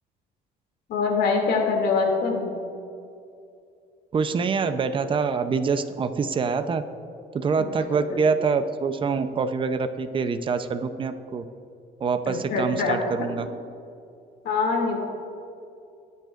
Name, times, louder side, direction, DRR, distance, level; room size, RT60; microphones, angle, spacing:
voice 1, 0.9-2.5 7.6-7.7 8.1-8.2 12.3-13.0 14.4-15.0, left 4 dB, 70° left, 0 dB, 2.5 m, -24 dB
voice 2, 4.1-6.8 7.3-11.4 12.0-13.5, right 5 dB, 30° right, 9 dB, 0.6 m, -25 dB
18.5 x 9.3 x 2.5 m, 2.5 s
cardioid pair, 110°, 17 cm